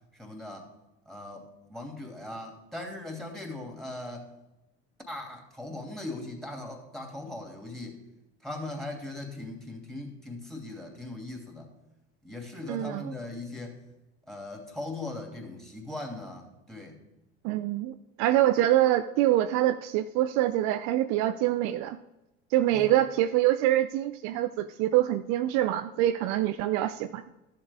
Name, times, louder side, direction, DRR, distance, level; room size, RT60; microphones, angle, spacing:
voice 1, 0.1-0.7 1.1-1.4 1.7-4.3 5.1-8.0 8.4-11.7 12.2-13.8 14.3-17.0 22.7-22.9, left 2 dB, ahead, 2 dB, 2.8 m, -39 dB
voice 2, 12.7-13.1 17.4-22.0 22.5-27.2, right 13 dB, 55° right, 10 dB, 0.5 m, -25 dB
13.0 x 7.4 x 3.6 m, 0.99 s
hypercardioid pair, 80°, 34 cm